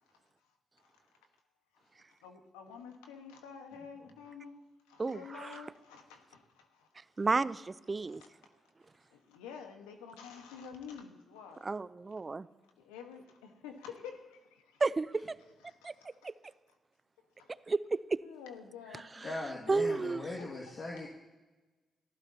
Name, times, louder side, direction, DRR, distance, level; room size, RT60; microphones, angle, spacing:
voice 1, 2.2-4.6 4.9-6.9 8.2-8.7 9.1-11.7 12.8-14.8 15.7-16.5 17.3-17.6 18.2-19.1 19.7-19.8 20.9-21.0, left 6 dB, 90° left, 5 dB, 1.4 m, -49 dB
voice 2, 5.0-5.6 7.2-8.2 11.6-12.5 14.8-15.4 15.8-15.9 16.2-16.3 17.7-18.2 19.7-20.2, right 3 dB, 35° right, 17 dB, 0.6 m, -32 dB
voice 3, 19.2-21.1, left 2 dB, 55° left, -2 dB, 2.1 m, -40 dB
28.5 x 15.0 x 2.9 m, 1.2 s
hypercardioid pair, 45°, 0 cm